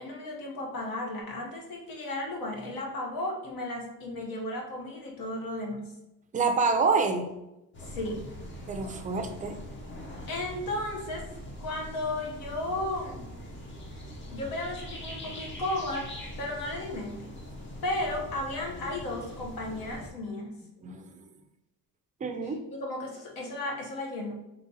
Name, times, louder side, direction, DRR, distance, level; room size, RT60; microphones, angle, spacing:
voice 1, 0.0-5.9 7.8-8.3 10.3-11.3 11.6-13.3 14.3-17.3 17.8-20.6 22.4-24.3, left 1 dB, 70° left, 0 dB, 0.9 m, -34 dB
voice 2, 6.3-7.3 8.7-9.6 20.8-21.2 22.2-22.6, right 4 dB, 25° right, 5 dB, 0.4 m, -27 dB
sound 1, 7.7-20.1, left 1 dB, 35° left, 0.7 m, -42 dB
5.0 x 2.9 x 2.7 m, 0.91 s
cardioid pair, 150°, 35 cm